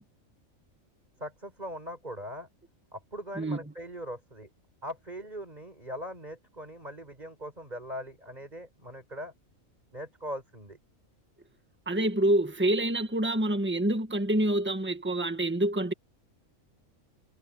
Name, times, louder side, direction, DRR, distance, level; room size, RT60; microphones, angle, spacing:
voice 1, 1.2-2.5 2.9-4.5 4.8-9.3 9.9-10.8, equal, 30° right, 5.4 m, -40 dB
voice 2, 11.9-15.9, right 1 dB, 10° right, 1.5 m, -27 dB
omnidirectional pair, 1.4 m